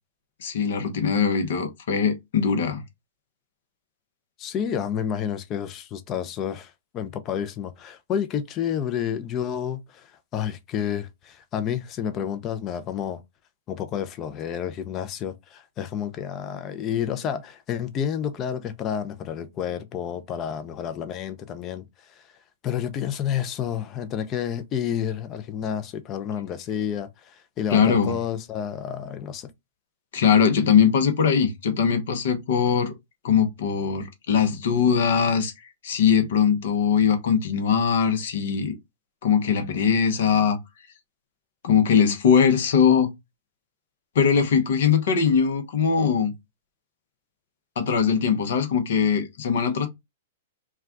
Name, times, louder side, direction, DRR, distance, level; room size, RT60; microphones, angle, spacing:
voice 1, 0.4-2.8 27.7-28.1 30.1-32.9 33.2-35.5 35.8-38.7 39.2-40.6 41.6-43.1 44.1-46.3 47.8-49.9, left 7 dB, 65° left, 0.8 m, -21 dB
voice 2, 4.4-13.2 13.7-22.2 22.6-29.5, left 9 dB, 30° left, 0.5 m, -30 dB
2.3 x 2.2 x 3.7 m
hypercardioid pair, 115°, 0 cm